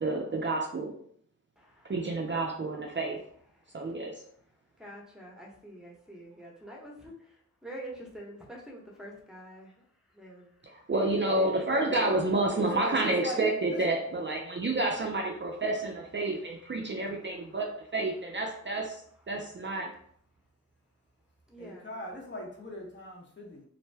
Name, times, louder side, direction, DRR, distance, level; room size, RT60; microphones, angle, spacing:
voice 1, 0.0-0.9 1.9-3.2 3.7-4.1 10.7-19.0 19.3-19.9, right 2 dB, 35° right, 1 dB, 0.4 m, -29 dB
voice 2, 1.6-1.9 4.8-7.1 7.6-9.7 10.1-10.5 11.3-12.1 21.5-21.9, right 1 dB, ahead, -2 dB, 0.9 m, -45 dB
voice 3, 12.6-13.4 13.7-13.8 21.6-23.6, equal, 35° left, -2 dB, 0.8 m, -40 dB
2.6 x 2.1 x 3.3 m, 0.62 s
cardioid pair, 55°, 32 cm